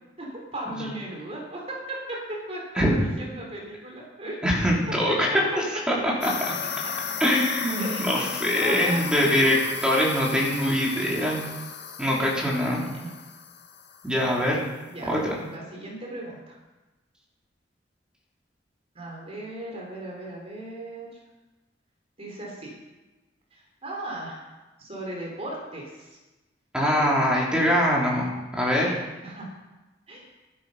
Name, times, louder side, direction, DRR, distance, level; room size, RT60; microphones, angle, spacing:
voice 1, 0.2-4.7 5.3-5.4 6.8-6.9 7.8-8.1 8.5-9.9 12.5-13.1 14.9-15.2 15.5-16.6 18.9-21.2 22.2-22.7 23.5-24.4 24.8-26.2 26.9-27.1 29.2-29.5 30.1-30.2, right 1 dB, 35° right, -1 dB, 3.6 m, -37 dB
voice 2, 4.4-6.3 7.2-9.6 9.8-11.4 12.0-12.8 14.0-14.6 15.1-15.4 26.7-29.0, equal, 5° right, -4 dB, 3.5 m, -23 dB
sound 1, 6.2-14.4, left 7 dB, 65° left, 1.7 m, -35 dB
12.5 x 12.5 x 5.6 m, 1.1 s
head